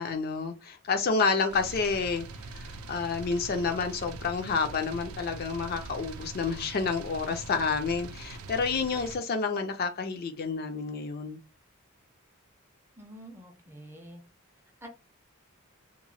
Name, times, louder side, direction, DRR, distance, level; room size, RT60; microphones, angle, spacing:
voice 1, 0.0-2.3 2.5-11.4, left 4 dB, 45° left, 0.4 m, -29 dB
sound 1, 1.5-9.2, right 3 dB, 80° right, 0.4 m, -43 dB
voice 2, 13.0-14.2 14.8-14.9, equal, 10° right, 0.4 m, -47 dB
2.9 x 2.0 x 2.6 m
head